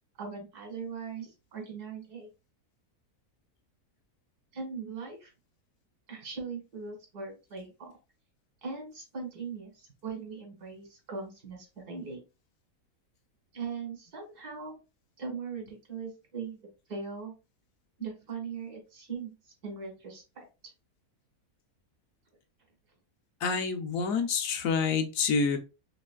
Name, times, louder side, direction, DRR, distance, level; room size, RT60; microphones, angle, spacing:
voice 1, 0.2-2.3 4.5-5.3 6.1-7.9 8.6-12.2 13.5-14.8 15.2-16.6 16.9-17.3 18.0-19.3 19.6-20.4, right 5 dB, 90° right, 1 dB, 2.1 m, -40 dB
voice 2, 23.4-25.6, left 5 dB, 70° left, 6 dB, 1.0 m, -27 dB
4.1 x 3.0 x 2.3 m, 0.29 s
omnidirectional pair, 1.6 m